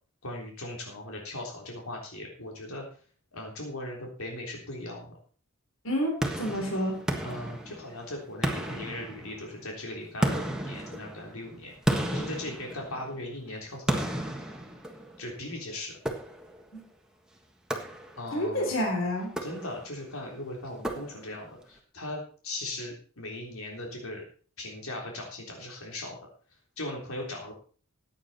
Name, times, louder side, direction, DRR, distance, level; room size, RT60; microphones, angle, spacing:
voice 1, 0.2-2.8 3.3-5.1 7.2-14.1 15.2-15.9 18.2-18.8 19.4-24.2 24.6-26.2 26.8-27.5, left 1 dB, 80° left, 0 dB, 3.6 m, -39 dB
voice 2, 5.8-7.0 18.3-19.3, equal, 60° left, 2 dB, 3.7 m, -29 dB
sound 1, 6.2-8.0 8.4-9.6 10.2-13.2 13.9-15.3 16.1-16.7 17.7-18.4 19.2-20.0 20.8-21.5, right 1 dB, 5° right, 1.5 m, -33 dB
15.0 x 9.3 x 4.3 m, 0.41 s
head